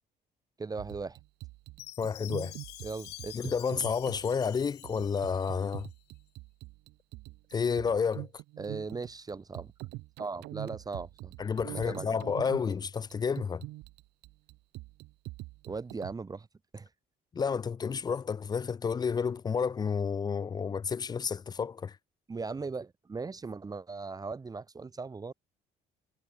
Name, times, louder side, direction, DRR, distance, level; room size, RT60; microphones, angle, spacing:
voice 1, 0.6-1.2 2.8-3.4 8.6-9.7 10.2-11.3 11.7-12.2 15.7-16.5 16.7-16.9 22.3-25.3, right 4 dB, 20° right, 1.3 m, -38 dB
sound 1, 0.8-16.1, right 21 dB, 90° right, 1.7 m, -44 dB
Chime, 1.8-5.9, left 16 dB, 80° left, 3.3 m, -48 dB
voice 2, 2.0-2.5 3.3-5.9 7.5-8.3 11.4-13.6 17.3-22.0, left 6 dB, 25° left, 0.4 m, -30 dB
cardioid pair, 110°, 17 cm